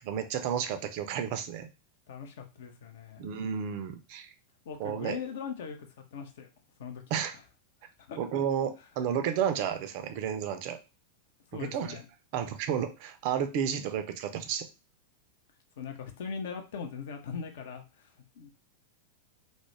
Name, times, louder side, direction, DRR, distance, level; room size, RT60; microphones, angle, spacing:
voice 1, 0.0-1.7 3.2-4.3 4.8-5.2 7.1-7.3 8.2-10.8 11.6-12.0 12.3-14.7, right 8 dB, 45° right, 8 dB, 0.3 m, -32 dB
voice 2, 2.1-3.2 4.7-6.5 6.8-7.2 8.1-8.2 11.5-12.0 15.8-18.1 18.4-18.5, left 6 dB, 55° left, 4 dB, 0.5 m, -40 dB
2.2 x 2.0 x 3.2 m, 0.29 s
figure-of-eight pair, 90°, 0 cm